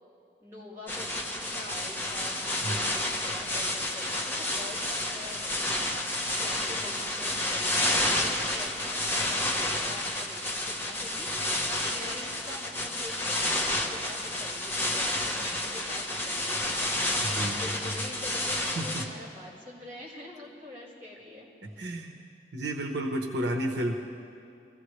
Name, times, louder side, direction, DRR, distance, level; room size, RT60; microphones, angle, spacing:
voice 1, 0.4-5.6 6.4-11.5 11.8-22.1, left 1 dB, 15° right, -9 dB, 4.1 m, -45 dB
sound 1, 0.9-19.0, left 1 dB, 10° left, 1.1 m, -30 dB
voice 2, 17.2-18.0 18.8-19.0 21.6-22.2 22.5-23.9, right 1 dB, 80° right, 2 dB, 1.1 m, -32 dB
25.5 x 15.5 x 3.3 m, 2.6 s
head